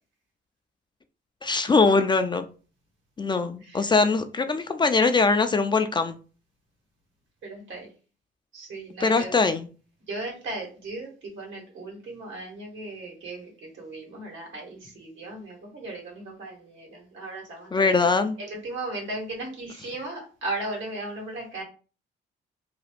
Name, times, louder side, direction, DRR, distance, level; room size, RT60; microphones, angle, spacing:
voice 1, 1.4-2.5 3.2-6.2 9.0-9.7 17.7-18.4, left 4 dB, 25° left, 0.4 m, -22 dB
voice 2, 7.4-7.9 8.5-9.3 10.1-18.1 18.4-21.6, right 2 dB, 75° right, 1.5 m, -36 dB
2.9 x 2.3 x 3.3 m
cardioid pair, 90°, 20 cm